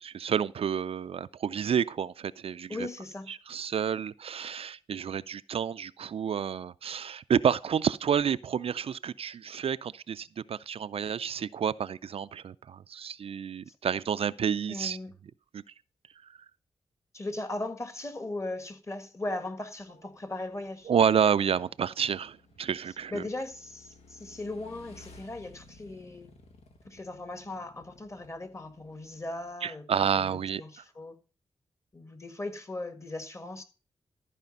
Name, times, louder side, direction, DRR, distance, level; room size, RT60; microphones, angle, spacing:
voice 1, 0.1-2.9 3.3-15.0 15.5-15.6 20.9-23.2 29.6-30.6, right 8 dB, 65° right, 0.4 m, -29 dB
voice 2, 2.7-3.3 13.7-13.8 14.7-15.1 17.1-20.9 23.1-26.3 26.9-29.9 30.1-30.3 30.6-31.2 31.9-33.6, left 2 dB, 30° left, 1.8 m, -38 dB
Motorcycle / Engine, 19.8-29.5, left 2 dB, 85° left, 1.8 m, -57 dB
13.5 x 5.0 x 5.3 m
cardioid pair, 70°, 11 cm